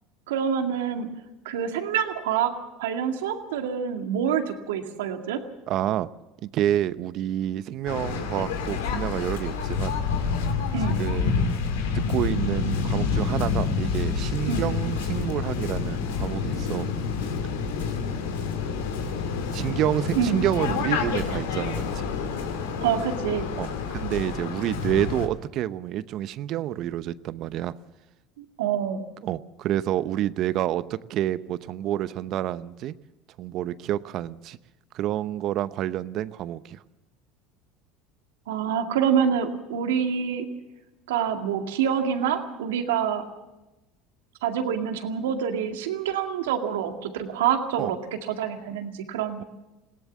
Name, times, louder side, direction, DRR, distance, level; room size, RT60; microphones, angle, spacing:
voice 1, 0.3-1.1 1.4-2.5 2.8-5.4 10.7-11.0 14.5-14.6 20.1-20.4 22.8-23.5 28.4-29.0 38.5-40.5 41.1-43.3 44.4-48.0 48.3-49.4, right 8 dB, 80° right, 5 dB, 2.1 m, -26 dB
voice 2, 5.7-6.1 6.4-10.0 11.0-11.4 11.9-16.9 19.5-22.1 23.6-23.7 23.9-27.7 29.2-33.0 33.4-34.6 34.9-36.8 47.8-47.9, right 12 dB, 55° right, 16 dB, 0.8 m, -28 dB
Waves surf, 7.9-25.2, left 5 dB, 80° left, 2.4 m, -28 dB
20.5 x 17.5 x 7.3 m, 1.0 s
hypercardioid pair, 80°, 0 cm